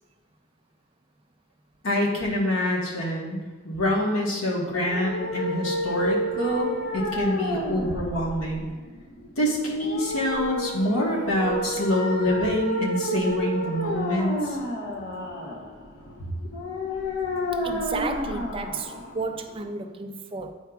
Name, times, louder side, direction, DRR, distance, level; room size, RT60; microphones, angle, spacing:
voice 1, 1.8-8.6 9.4-14.6, left 1 dB, 90° left, 1.3 m, -26 dB
sound 1, 4.7-19.7, equal, 65° left, 1.0 m, -30 dB
voice 2, 17.6-20.5, right 3 dB, 25° right, 0.4 m, -33 dB
9.2 x 4.5 x 2.3 m
head